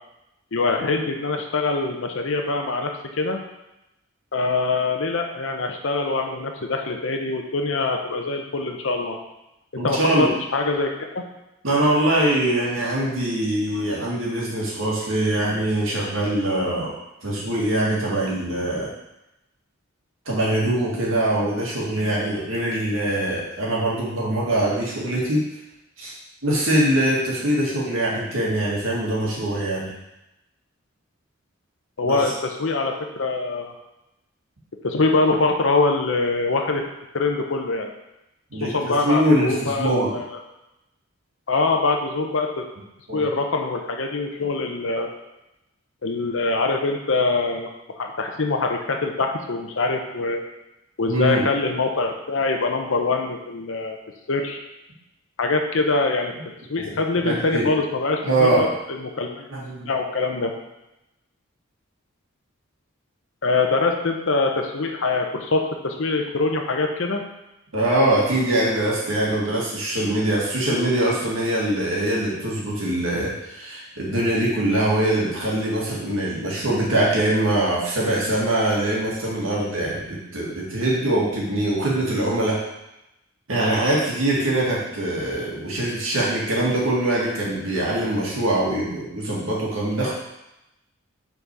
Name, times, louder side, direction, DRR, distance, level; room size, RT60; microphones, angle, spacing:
voice 1, 0.5-2.9 3.2-3.4 4.3-9.2 9.7-11.2 32.0-33.7 34.8-36.8 37.1-37.9 38.6-40.4 41.5-42.7 43.1-45.1 46.0-47.7 48.0-50.4 51.0-54.0 54.3-54.6 55.4-56.3 56.7-59.5 59.8-60.5 63.4-67.2, left 3 dB, 65° left, 3 dB, 0.7 m, -24 dB
voice 2, 9.8-10.3 11.6-16.9 17.2-18.9 20.3-25.4 26.0-26.1 26.4-29.9 32.0-32.2 38.5-40.1 43.1-43.2 51.1-51.4 56.8-56.9 57.2-57.7 58.2-58.7 59.5-59.9 67.7-82.6 83.5-90.1, right 1 dB, 70° right, -5 dB, 2.0 m, -23 dB
5.8 x 4.2 x 4.7 m, 0.91 s
head